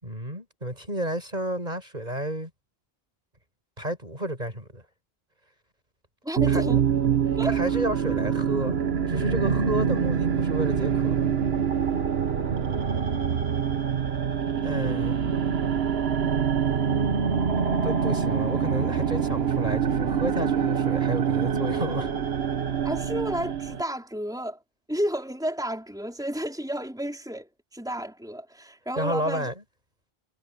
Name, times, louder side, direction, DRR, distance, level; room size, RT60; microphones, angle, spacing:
voice 1, 0.0-2.5 3.8-4.8 6.5-6.6 7.4-8.8 9.1-11.1 14.6-15.2 17.8-22.1 29.0-29.5, right 1 dB, 45° right, 7.8 m, -31 dB
voice 2, 6.2-6.8 7.4-7.6 22.8-24.6 24.9-29.5, equal, 5° right, 4.2 m, -31 dB
sound 1, 6.4-23.8, right 7 dB, 80° right, 1.4 m, -25 dB
omnidirectional pair, 1.0 m